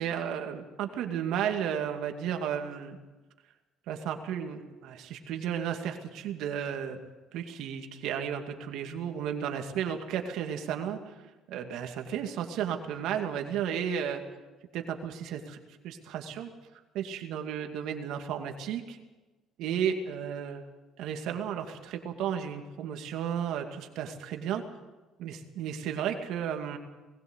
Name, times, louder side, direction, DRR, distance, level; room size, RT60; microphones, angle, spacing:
voice 1, 0.0-3.0 3.9-7.0 7.3-11.1 11.5-14.2 14.7-15.6 15.8-16.5 16.9-19.0 19.6-20.6 21.0-24.6 25.2-26.8, right 8 dB, 75° right, 4 dB, 2.4 m, -33 dB
20.0 x 16.5 x 8.2 m, 1.2 s
cardioid pair, 100°, 0 cm